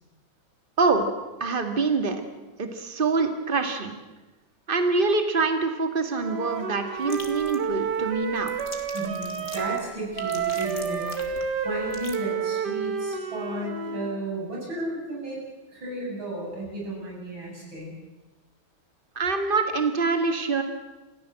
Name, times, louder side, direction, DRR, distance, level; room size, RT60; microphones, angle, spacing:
voice 1, 0.8-1.1 1.4-2.2 2.6-4.0 4.7-8.5 19.2-20.6, right 4 dB, 25° right, 7 dB, 2.1 m, -25 dB
Wind instrument woodwind instrument, 6.1-9.9 10.2-14.2, right 6 dB, 60° right, 1.9 m, -30 dB
sound 1, 7.0-12.2, left 3 dB, 35° left, 2.7 m, -44 dB
voice 2, 8.9-11.4 11.6-15.4 15.7-17.9, right 1 dB, 75° right, -3 dB, 8.5 m, -33 dB
28.0 x 15.5 x 7.7 m, 1.1 s
omnidirectional pair, 2.2 m